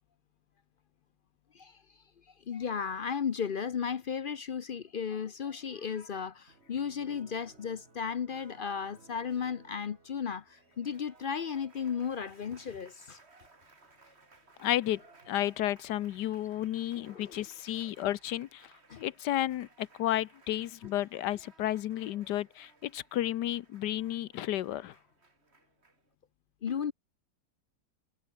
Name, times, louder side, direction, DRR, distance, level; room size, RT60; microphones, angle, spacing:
voice 1, 2.5-13.2 17.0-17.4 18.9-19.0 26.6-26.9, left 7 dB, 55° left, 0.6 m, -35 dB
Applause, 6.5-26.1, right 3 dB, 40° right, 2.8 m, -60 dB
voice 2, 14.6-24.9, left 13 dB, 85° left, 1.4 m, -32 dB
omnidirectional pair, 1.8 m